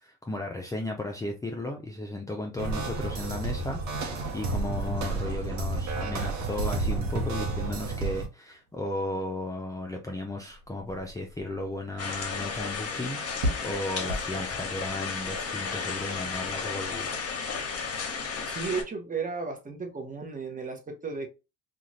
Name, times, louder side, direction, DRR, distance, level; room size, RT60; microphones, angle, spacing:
voice 1, 0.0-17.1, left 1 dB, 10° left, 0.5 m, -35 dB
sound 1, 2.6-8.3, right 3 dB, 50° right, 1.0 m, -31 dB
sound 2, 8.0-14.5, equal, 75° right, 1.0 m, -39 dB
sound 3, 12.0-18.8, left 5 dB, 40° left, 1.0 m, -33 dB
voice 2, 18.5-21.3, right 4 dB, 20° right, 1.0 m, -34 dB
2.6 x 2.4 x 3.2 m
hypercardioid pair, 70°, 36 cm